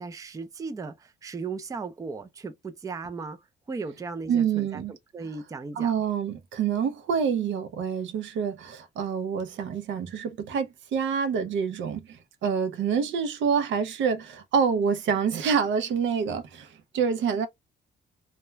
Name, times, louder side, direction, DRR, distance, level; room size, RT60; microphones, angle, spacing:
voice 1, 0.0-3.4 3.7-5.9, right 4 dB, 15° right, 0.4 m, -36 dB
voice 2, 4.3-4.9 5.8-17.5, right 6 dB, 70° right, 0.6 m, -27 dB
2.3 x 2.1 x 3.0 m
cardioid pair, 90°, 20 cm